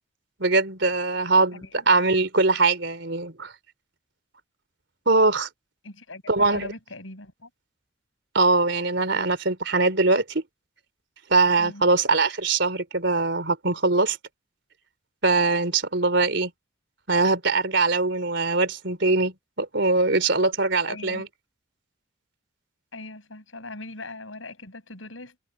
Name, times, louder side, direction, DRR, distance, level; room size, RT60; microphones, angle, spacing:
voice 1, 0.4-3.5 5.1-5.5 6.3-6.7 8.3-10.4 11.3-14.2 15.2-16.5 17.1-21.3, right 3 dB, 65° right, 3.5 m, -22 dB
voice 2, 1.5-1.8 5.8-7.5 11.6-11.9 20.9-21.3 22.9-25.4, left 2 dB, 80° left, 7.5 m, -40 dB
head